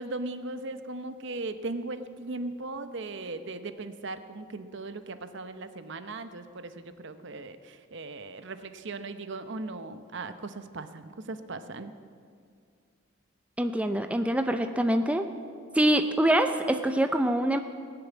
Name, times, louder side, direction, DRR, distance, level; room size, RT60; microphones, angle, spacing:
voice 1, 0.0-11.9, right 2 dB, 55° right, 10 dB, 0.8 m, -38 dB
voice 2, 13.6-15.3 15.7-17.6, right 1 dB, 5° right, 7 dB, 0.4 m, -25 dB
19.5 x 6.9 x 9.3 m, 2.3 s
head